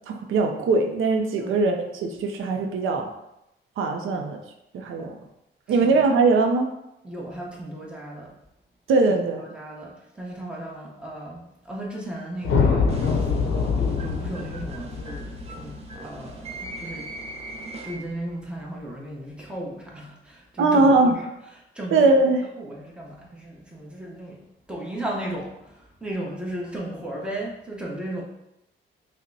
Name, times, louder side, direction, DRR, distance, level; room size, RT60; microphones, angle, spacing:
voice 1, 0.1-1.7 2.0-3.1 3.8-4.4 4.7-5.1 5.7-6.7 8.9-9.4 20.6-21.1 21.9-22.5, right 3 dB, 85° right, 4 dB, 0.5 m, -20 dB
voice 2, 5.7-6.0 7.0-8.3 9.1-17.1 17.8-22.1 22.6-28.2, right 1 dB, 5° right, -3 dB, 0.8 m, -36 dB
sound 1, 12.4-16.8, left 5 dB, 80° left, 0.5 m, -24 dB
sound 2, 12.9-18.3, right 2 dB, 30° right, 0.5 m, -40 dB
5.1 x 2.1 x 2.7 m, 0.86 s
cardioid pair, 100°, 20 cm